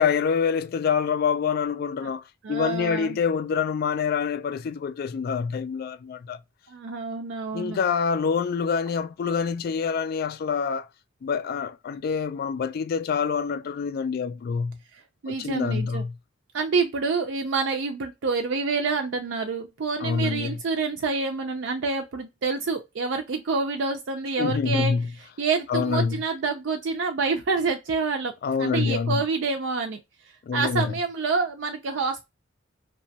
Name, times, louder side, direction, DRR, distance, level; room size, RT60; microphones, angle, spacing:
voice 1, 0.0-6.4 7.5-10.9 11.2-14.8 15.3-16.1 20.0-20.6 24.4-25.1 25.7-26.2 28.4-29.2 30.5-30.9, left 6 dB, 55° left, 0.3 m, -26 dB
voice 2, 2.4-3.2 6.7-7.8 14.9-16.0 16.5-24.9 25.4-28.3 28.6-30.0 30.5-32.3, right 4 dB, 70° right, 0.4 m, -27 dB
2.8 x 2.2 x 2.7 m
head